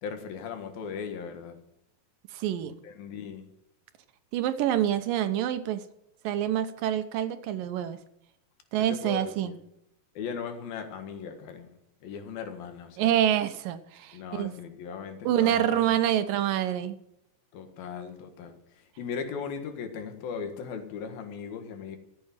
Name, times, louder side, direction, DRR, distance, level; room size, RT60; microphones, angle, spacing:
voice 1, 0.0-1.6 2.6-3.5 8.9-9.6 10.2-11.7 12.0-13.2 14.1-16.0 17.5-22.0, left 6 dB, 85° left, 3.5 m, -38 dB
voice 2, 2.3-2.7 4.3-5.8 6.2-8.0 8.7-9.5 13.0-14.5 15.3-17.0, right 11 dB, 75° right, 2.6 m, -26 dB
14.0 x 8.6 x 8.9 m
omnidirectional pair, 4.1 m